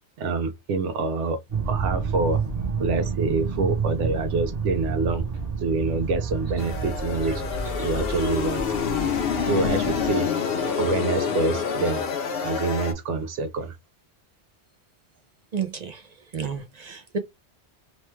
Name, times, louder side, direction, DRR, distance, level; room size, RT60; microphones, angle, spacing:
voice 1, 0.2-2.4 2.8-5.3 5.6-7.5 7.8-8.6 9.5-10.3 10.8-12.0 12.4-13.8, right 3 dB, 85° right, 1.0 m, -26 dB
sound 1, 1.5-10.1, right 5 dB, 35° right, 0.8 m, -30 dB
sound 2, 6.6-12.9, left 7 dB, 60° left, 0.9 m, -27 dB
voice 2, 15.5-16.0 16.3-17.2, right 6 dB, 60° right, 0.4 m, -31 dB
3.1 x 2.2 x 3.1 m
omnidirectional pair, 1.2 m